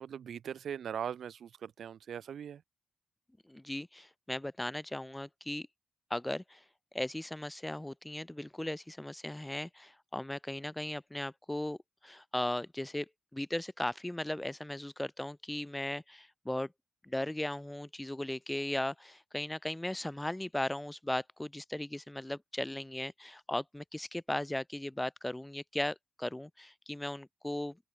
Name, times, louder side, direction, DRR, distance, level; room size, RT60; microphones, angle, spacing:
voice 1, 0.0-2.6, right 8 dB, 70° right, 3.6 m, -40 dB
voice 2, 3.5-5.7 6.1-6.6 6.9-11.8 12.0-13.1 13.3-16.7 17.0-27.8, left 1 dB, 10° left, 2.8 m, -37 dB
open air
cardioid pair, 75°, 0 cm